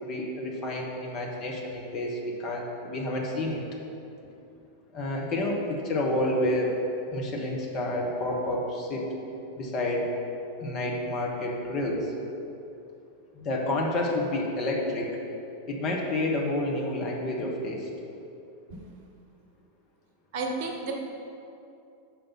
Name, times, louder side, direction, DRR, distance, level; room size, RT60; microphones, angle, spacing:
voice 1, 0.0-3.6 4.9-6.8 7.1-9.1 9.6-10.1 10.6-12.1 13.3-15.1 15.7-17.9, left 1 dB, 35° left, -1 dB, 1.2 m, -29 dB
voice 2, 20.3-20.9, right 3 dB, 50° right, 2 dB, 0.9 m, -31 dB
6.1 x 5.2 x 5.6 m, 2.7 s
figure-of-eight pair, 90°, 0 cm